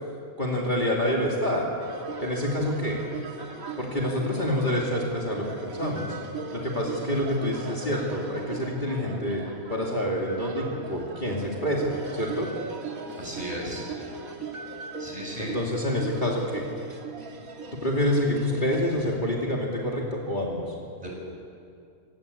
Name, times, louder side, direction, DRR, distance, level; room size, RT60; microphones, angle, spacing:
voice 1, 0.4-1.7 2.2-3.0 3.8-6.2 6.5-12.5 15.4-16.6 17.8-20.6, left 1 dB, 30° left, -3 dB, 2.9 m, -27 dB
sound 1, 1.8-19.3, right 4 dB, 65° right, 2.3 m, -39 dB
voice 2, 13.2-13.8 15.0-15.5 21.0-21.1, equal, 25° right, -2 dB, 6.5 m, -35 dB
28.0 x 17.5 x 8.4 m, 2.4 s
omnidirectional pair, 1.6 m